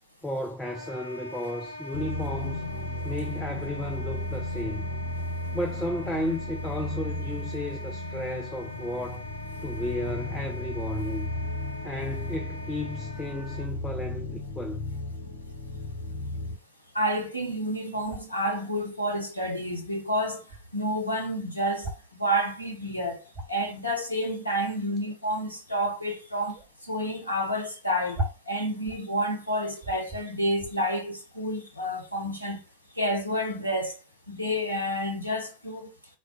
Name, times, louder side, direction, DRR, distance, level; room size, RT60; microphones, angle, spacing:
voice 1, 0.2-2.7 3.0-4.8 5.5-9.2 9.6-11.3 11.8-14.8, left 1 dB, 5° left, 0.4 m, -33 dB
Wind instrument woodwind instrument, 0.6-13.7, left 1 dB, 70° right, 0.7 m, -43 dB
sound 1, 1.9-16.6, left 1 dB, 60° left, 0.9 m, -35 dB
voice 2, 16.9-20.4 20.7-23.2 23.5-26.6 26.8-28.2 28.5-32.6 33.0-34.0 34.3-35.9, equal, 85° left, 0.7 m, -29 dB
sound 2, 18.0-18.4 19.6-19.7 19.9-20.0 20.3-20.6 21.7-22.2 22.7-22.8 23.1-23.7 25.0-25.2 25.8-26.1 26.5-26.7 27.1-27.2 27.5-27.6 28.1-29.1 29.4-29.5 29.8-30.2 30.5-30.7, right 1 dB, 25° right, 1.1 m, -36 dB
3.5 x 2.2 x 3.7 m
figure-of-eight pair, 90°, 0 cm